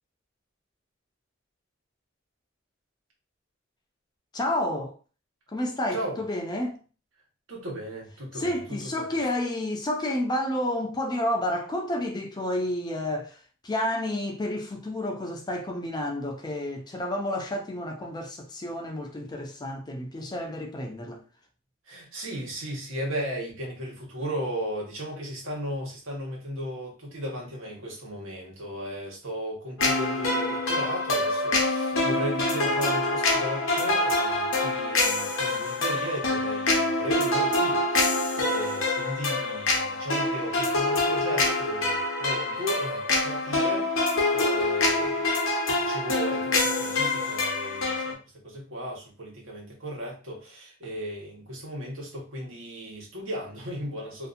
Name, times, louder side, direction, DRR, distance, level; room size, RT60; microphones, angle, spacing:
voice 1, 4.3-5.0 5.5-6.8 8.3-21.2, left 1 dB, 20° left, 0.5 m, -30 dB
voice 2, 7.5-8.8 21.9-45.3 45.6-54.3, equal, 80° right, 1.2 m, -36 dB
sound 1, 29.8-48.1, left 2 dB, 85° left, 0.7 m, -25 dB
2.7 x 2.5 x 2.5 m
head